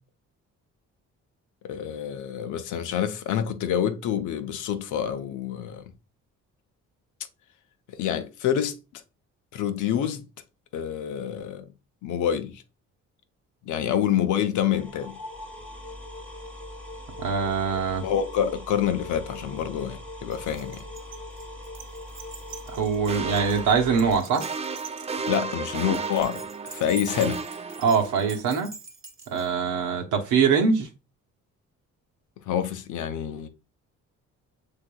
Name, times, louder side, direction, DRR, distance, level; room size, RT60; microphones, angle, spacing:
voice 1, 1.6-5.8 7.9-9.0 9.5-10.3 10.7-11.7 12.0-12.6 13.6-15.2 18.0-20.8 25.3-27.4 32.5-33.5, left 9 dB, 80° left, 0.7 m, -27 dB
sound 1, 14.7-24.2, left 1 dB, 5° left, 1.2 m, -41 dB
voice 2, 17.2-18.1 22.7-24.4 27.8-28.7 29.3-30.9, right 6 dB, 80° right, 1.0 m, -23 dB
Keys jangling, 20.3-29.5, right 4 dB, 40° right, 1.0 m, -44 dB
sound 2, 23.1-28.4, right 4 dB, 20° right, 0.4 m, -34 dB
6.5 x 3.5 x 2.2 m
cardioid pair, 90°, 30 cm